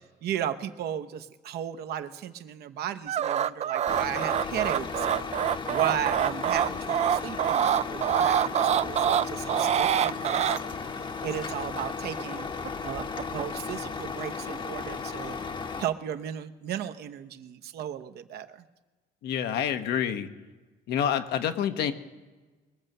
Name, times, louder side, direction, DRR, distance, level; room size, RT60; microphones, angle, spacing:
voice 1, 0.2-5.3 5.7-12.5 12.8-15.4 15.8-18.6, right 10 dB, 70° right, 9 dB, 0.9 m, -35 dB
sound 1, 3.1-10.6 12.2-12.7 13.0-13.4, right 9 dB, 40° right, 0.4 m, -25 dB
Truck, 3.9-15.9, left 5 dB, 30° left, 0.9 m, -35 dB
voice 2, 19.2-20.3 20.9-21.9, left 9 dB, 75° left, 9 dB, 1.1 m, -27 dB
22.0 x 7.6 x 6.6 m, 1.3 s
cardioid pair, 110°, 17 cm